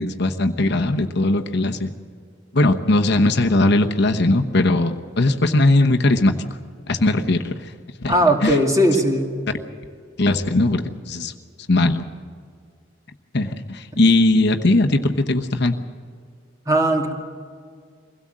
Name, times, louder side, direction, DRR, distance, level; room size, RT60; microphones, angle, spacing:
voice 1, 0.0-1.9 2.5-6.3 6.9-7.7 8.0-8.1 8.4-8.6 10.2-11.3 11.7-12.0 13.3-15.7, left 2 dB, 60° left, 5 dB, 1.0 m, -19 dB
voice 2, 8.1-9.3 13.9-14.0 16.7-17.1, right 1 dB, 15° right, 2 dB, 2.3 m, -18 dB
23.5 x 17.0 x 7.6 m, 2.1 s
head